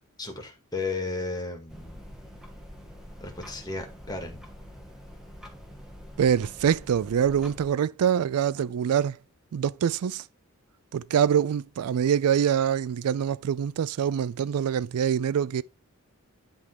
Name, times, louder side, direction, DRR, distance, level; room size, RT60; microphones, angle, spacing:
voice 1, 0.2-2.0 3.2-4.4, left 3 dB, 20° left, 2.0 m, -34 dB
sound 1, 1.7-7.7, equal, 5° right, 1.5 m, -46 dB
voice 2, 6.2-9.2 9.5-10.2 10.9-15.6, right 8 dB, 80° right, 0.4 m, -25 dB
10.5 x 3.6 x 4.6 m
head